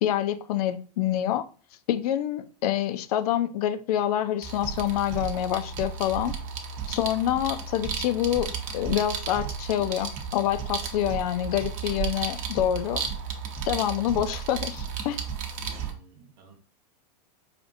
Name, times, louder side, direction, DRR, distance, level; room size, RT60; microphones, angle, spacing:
voice 1, 0.0-1.5 1.9-6.3 6.9-13.0 13.7-15.2, left 11 dB, 70° left, 0.4 m, -27 dB
sound 1, 4.4-15.9, right 6 dB, 40° right, 0.8 m, -34 dB
voice 2, 15.6-16.5, right 5 dB, 85° right, 1.1 m, -52 dB
5.0 x 2.5 x 2.5 m
hypercardioid pair, 120°, 20 cm